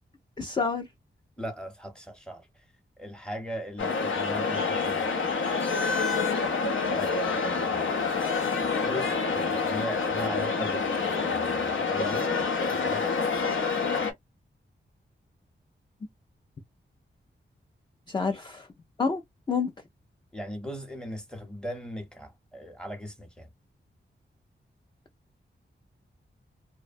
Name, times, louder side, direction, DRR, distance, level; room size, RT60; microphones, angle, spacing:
voice 1, 0.4-0.9 18.1-18.7 19.0-19.2 19.5-19.7, left 5 dB, 25° left, 0.4 m, -28 dB
voice 2, 1.4-2.7 3.0-5.1 6.9-8.0 8.8-12.4 12.6-13.2 18.2-18.4 20.3-23.5, equal, 5° left, 0.8 m, -39 dB
sound 1, 3.8-14.1, left 4 dB, 85° left, 0.8 m, -27 dB
2.6 x 2.1 x 2.4 m
wide cardioid pair, 125°, 20 cm